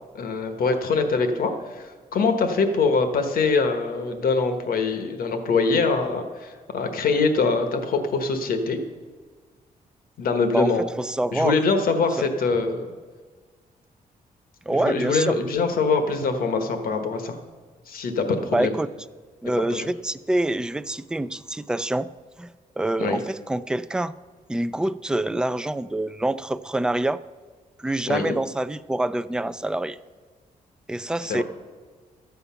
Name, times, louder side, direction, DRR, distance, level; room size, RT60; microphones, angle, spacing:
voice 1, 0.1-8.8 10.2-10.8 11.3-12.9 14.7-17.4 17.9-18.7 19.6-19.9 23.0-23.2 28.1-28.4 31.3-31.4, left 4 dB, 75° left, 7 dB, 1.3 m, -23 dB
voice 2, 11.0-11.6 14.7-15.4 18.5-18.9 19.4-22.1 22.4-24.1 24.5-27.2 27.8-30.0 30.9-31.4, right 1 dB, 5° right, 13 dB, 0.3 m, -26 dB
13.0 x 8.2 x 5.7 m, 1.5 s
cardioid pair, 125°, 15 cm